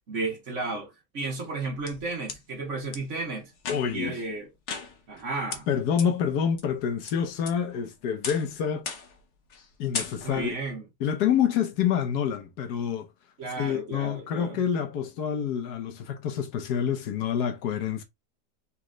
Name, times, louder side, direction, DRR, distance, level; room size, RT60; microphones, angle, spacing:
voice 1, 0.1-3.5 3.9-4.5 5.1-5.7 10.2-10.9 13.4-14.6, right 3 dB, 45° right, 1.7 m, -33 dB
sound 1, 1.4-2.4 2.9-3.0 3.6-4.1 4.7-5.2 5.5-5.6 6.0-6.1 6.6-7.1 7.5-7.8 8.2-8.5 8.9-9.2 9.5-9.7 9.9-10.5, left 5 dB, 50° left, 1.0 m, -36 dB
voice 2, 3.7-4.2 5.7-8.9 9.8-10.5 11.0-13.1 13.6-18.0, left 8 dB, 70° left, 1.4 m, -27 dB
4.3 x 3.0 x 3.7 m
omnidirectional pair, 1.8 m